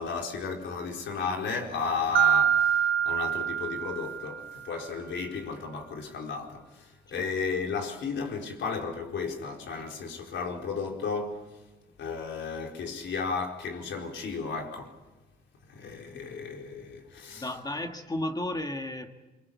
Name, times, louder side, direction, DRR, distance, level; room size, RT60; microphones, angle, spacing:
voice 1, 0.0-11.4 12.0-14.9 15.7-17.5, left 5 dB, 70° left, 4.5 m, -34 dB
Mallet percussion, 2.2-4.7, right 9 dB, 80° right, 0.8 m, -25 dB
voice 2, 17.4-19.1, left 1 dB, 20° left, 1.9 m, -34 dB
24.5 x 24.5 x 8.4 m
cardioid pair, 90°, 20 cm